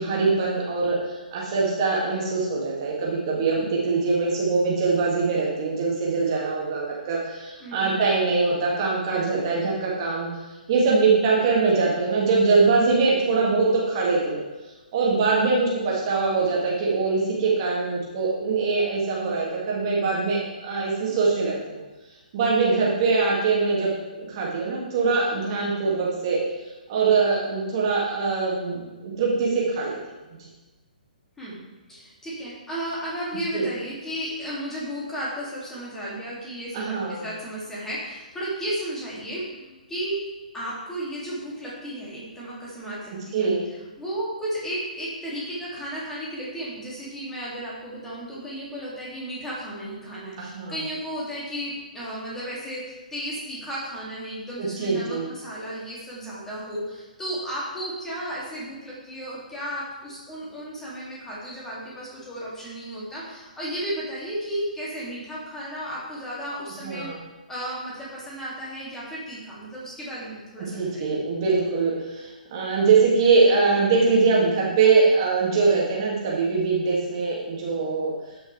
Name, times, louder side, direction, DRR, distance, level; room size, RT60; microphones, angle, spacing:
voice 1, 0.0-10.3 10.7-14.4 14.9-21.8 22.3-26.4 26.9-30.0 33.5-33.7 36.7-37.3 43.3-43.6 50.4-50.7 54.6-55.3 66.8-67.2 70.8-78.1, right 4 dB, 35° right, -4 dB, 2.3 m, -22 dB
voice 2, 7.6-8.0 31.4-31.6 31.9-40.3 40.5-43.5 44.0-67.1 67.5-71.2, right 1 dB, 10° left, -7 dB, 2.6 m, -34 dB
13.5 x 6.1 x 3.4 m, 1.2 s
figure-of-eight pair, 125°, 5 cm